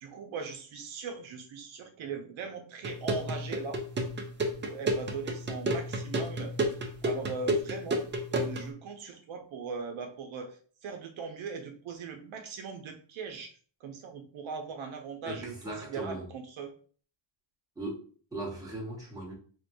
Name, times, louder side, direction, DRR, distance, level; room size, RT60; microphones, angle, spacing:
voice 1, 0.0-3.8 4.6-6.5 7.0-8.0 8.3-10.6 10.8-13.5 13.8-16.7, right 5 dB, 75° right, 0.7 m, -40 dB
sound 1, 2.8-8.7, right 1 dB, 25° right, 0.3 m, -31 dB
voice 2, 15.3-16.3 17.8-19.3, right 1 dB, 5° right, 1.0 m, -38 dB
4.5 x 2.2 x 2.6 m
wide cardioid pair, 175°, 48 cm